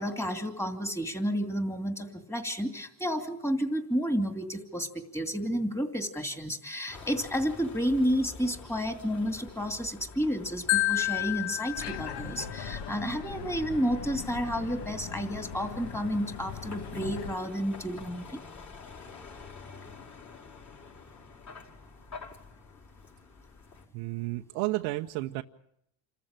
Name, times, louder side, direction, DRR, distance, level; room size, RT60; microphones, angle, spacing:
voice 1, 0.0-18.4, equal, 5° left, 5 dB, 2.7 m, -31 dB
Vehicle, 6.9-23.9, left 4 dB, 35° left, 5.1 m, -48 dB
Marimba xylophone, 10.7-12.8, left 19 dB, 80° left, 0.8 m, -30 dB
sound 1, 11.8-17.4, left 6 dB, 55° left, 1.8 m, -40 dB
voice 2, 23.9-25.4, right 19 dB, 90° right, 3 dB, 0.9 m, -32 dB
27.5 x 14.5 x 8.9 m, 0.76 s
cardioid pair, 115°, 49 cm